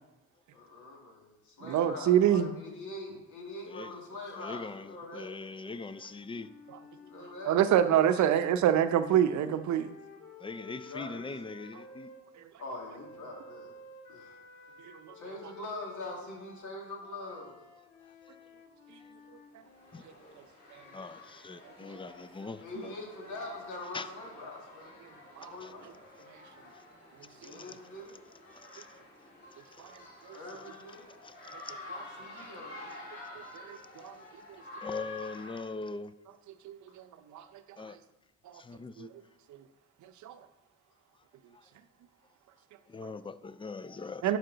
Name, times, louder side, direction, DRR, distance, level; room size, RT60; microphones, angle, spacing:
voice 1, 0.5-5.3 6.9-8.3 10.6-11.3 12.6-13.7 14.1-14.4 15.1-17.5 22.6-24.9 25.4-25.9 26.4-26.5 27.3-28.2 30.3-31.1 32.2-33.1 33.3-33.5, left 2 dB, 80° left, 2.2 m, -43 dB
voice 2, 1.6-2.5 7.4-9.9 14.9-15.1 20.7-20.8 21.9-22.0 25.4-25.5 29.8-29.9 30.2-30.4 33.5-33.8 34.0-34.2 36.6-37.1 37.3-37.4 38.5-38.6 39.0-39.1 39.5-39.6 40.0-40.4 44.2-44.4, right 10 dB, 70° right, 0.6 m, -26 dB
voice 3, 3.7-4.0 4.4-6.5 10.4-12.1 18.2-18.3 19.0-19.1 19.9-20.0 20.9-23.0 23.9-24.1 25.6-25.7 26.7-26.8 27.4-27.8 28.6-28.9 29.7-30.0 30.3-30.6 31.2-31.8 32.4-32.5 34.8-36.1 37.8-38.0 38.5-39.1 41.5-41.7 42.9-44.3, left 3 dB, 20° left, 0.3 m, -42 dB
sound 1, 5.3-12.2 12.9-20.1, left 3 dB, 65° left, 1.7 m, -53 dB
sound 2, 19.6-35.6, left 2 dB, 35° left, 2.9 m, -49 dB
11.0 x 4.8 x 3.9 m
cardioid pair, 90°, 30 cm